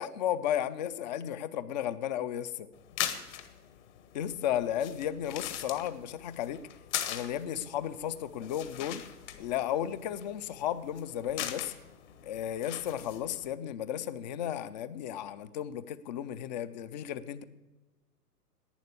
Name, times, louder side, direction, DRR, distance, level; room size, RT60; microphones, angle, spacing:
voice 1, 0.0-2.7 4.1-6.6 7.1-9.0 9.4-11.7 12.2-17.4, left 10 dB, 30° left, 15 dB, 0.5 m, -34 dB
sound 1, 2.7-13.5, left 11 dB, 45° left, 1.4 m, -41 dB
11.5 x 9.4 x 8.5 m, 1.2 s
figure-of-eight pair, 115°, 48 cm